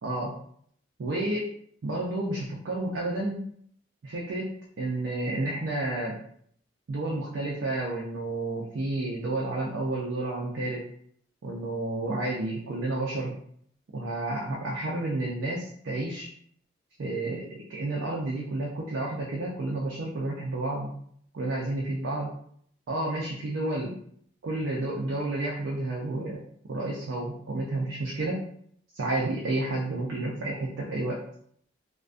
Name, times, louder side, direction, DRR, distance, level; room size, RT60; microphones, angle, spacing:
voice 1, 0.0-0.3 1.0-1.5 1.8-3.4 4.0-6.2 6.9-10.8 11.4-13.4 13.9-16.3 17.0-20.9 21.3-22.3 22.9-24.0 24.4-26.4 26.6-28.5 28.9-31.2, right 2 dB, 70° right, -3 dB, 0.4 m, -31 dB
2.3 x 2.1 x 2.4 m, 0.64 s
head